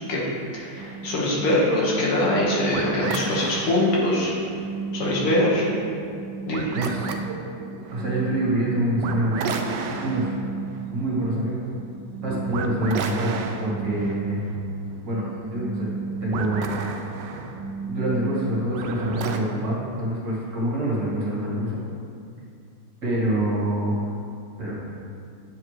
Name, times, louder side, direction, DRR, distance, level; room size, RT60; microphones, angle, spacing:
voice 1, 0.5-4.3 4.9-5.6 6.5-6.7, left 1 dB, 90° left, -5 dB, 2.5 m, -23 dB
sound 1, 0.8-19.4, right 4 dB, 70° right, 1.1 m, -33 dB
voice 2, 6.7-7.1 7.9-9.4 10.0-10.3 10.9-11.6 12.2-14.4 15.0-15.9 16.2-16.8 17.8-21.8 23.0-24.1 24.6-24.7, right 1 dB, 55° right, -7 dB, 2.5 m, -26 dB
9.4 x 7.4 x 3.2 m, 2.5 s
omnidirectional pair, 2.3 m